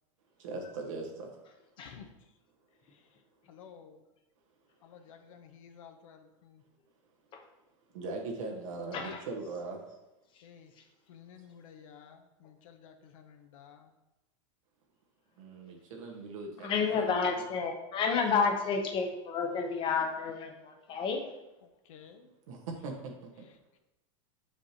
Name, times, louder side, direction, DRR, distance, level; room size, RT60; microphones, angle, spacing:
voice 1, 0.4-1.4 7.9-9.8 15.4-17.4 22.5-23.5, right 3 dB, 80° right, 1 dB, 1.4 m, -40 dB
voice 2, 1.8-2.4 2.8-4.1 4.8-6.6 10.4-14.0 21.6-22.3 23.4-23.8, left 7 dB, 80° left, 6 dB, 0.8 m, -54 dB
voice 3, 8.9-9.2 10.3-10.4 16.6-21.3, left 5 dB, 30° left, 4 dB, 0.8 m, -30 dB
6.6 x 5.0 x 2.9 m, 0.97 s
supercardioid pair, 145°, 17 cm